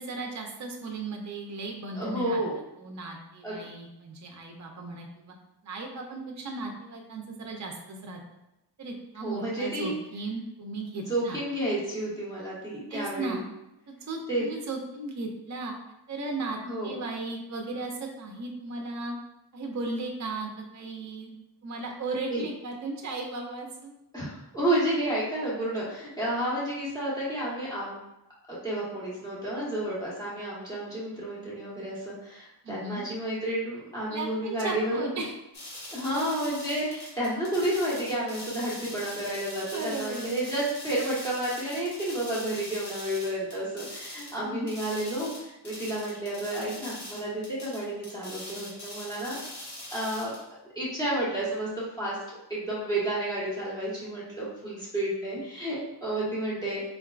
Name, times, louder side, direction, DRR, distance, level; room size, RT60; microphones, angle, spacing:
voice 1, 0.0-2.4 2.8-5.4 5.6-8.2 8.8-11.4 12.9-13.4 13.9-15.7 16.1-19.1 19.5-21.3 21.6-23.9 32.6-33.1 34.1-35.3 39.6-40.4 44.4-44.7 55.4-55.5, right 3 dB, 40° right, 1 dB, 0.5 m, -36 dB
voice 2, 1.9-2.5 3.4-3.7 9.2-9.9 11.0-13.4 14.3-14.4 16.6-17.0 22.3-22.4 24.1-28.0 28.5-35.0 35.9-49.4 49.9-50.3 50.7-52.2 52.5-56.8, right 1 dB, 10° left, -8 dB, 1.2 m, -31 dB
sound 1, 35.5-44.4 44.7-50.4, left 1 dB, 65° left, 1.3 m, -42 dB
3.7 x 3.4 x 2.4 m, 0.89 s
wide cardioid pair, 100°, 43 cm